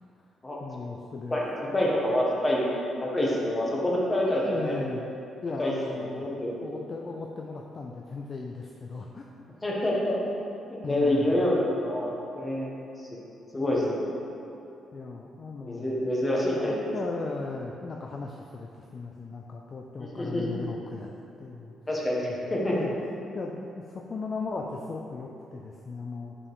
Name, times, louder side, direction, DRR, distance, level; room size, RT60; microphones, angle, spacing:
voice 1, 0.6-1.4 4.4-5.0 5.4-6.3 6.6-9.3 10.8-11.4 13.5-13.9 14.9-16.0 16.4-21.1 21.4-21.7 22.2-22.9 23.3-26.4, left 4 dB, 40° left, 0 dB, 0.5 m, -37 dB
voice 2, 1.3-2.6 3.0-4.8 5.6-6.6 9.6-10.1 10.7-12.7 13.0-13.1 13.5-14.0 15.6-16.8 20.0-20.6 21.9-22.7, left 1 dB, 20° left, -4 dB, 1.5 m, -27 dB
5.5 x 5.2 x 4.8 m, 2.7 s
cardioid pair, 90°, 0 cm